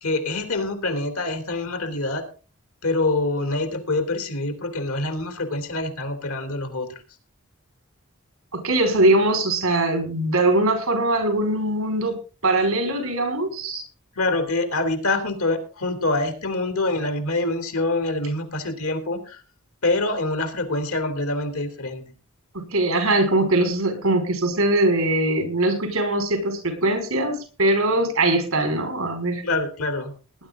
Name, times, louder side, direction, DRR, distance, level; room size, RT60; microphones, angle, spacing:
voice 1, 0.0-2.3 2.8-6.9 14.2-19.4 19.8-22.0 29.4-30.1, left 2 dB, 90° left, 7 dB, 3.3 m, -25 dB
voice 2, 8.5-12.1 12.4-13.8 22.5-29.4, right 2 dB, 75° right, 6 dB, 5.0 m, -21 dB
19.0 x 11.0 x 3.8 m, 0.35 s
head